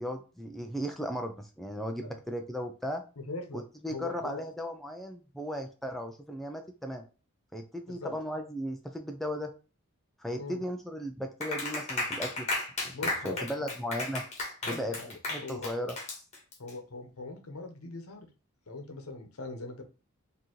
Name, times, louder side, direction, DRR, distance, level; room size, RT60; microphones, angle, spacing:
voice 1, 0.0-3.0 3.5-7.0 7.5-9.5 10.2-12.5 12.8-14.2 14.7-16.0, equal, ahead, 3 dB, 0.3 m, -36 dB
voice 2, 3.2-3.6 3.9-4.4 7.9-8.1 10.3-10.6 12.9-13.7 14.6-15.1 15.4-15.7 16.6-18.3 18.7-19.8, left 3 dB, 75° left, 5 dB, 0.9 m, -41 dB
Clapping, 11.4-16.7, left 2 dB, 30° left, 1.3 m, -34 dB
4.4 x 2.8 x 3.0 m, 0.34 s
head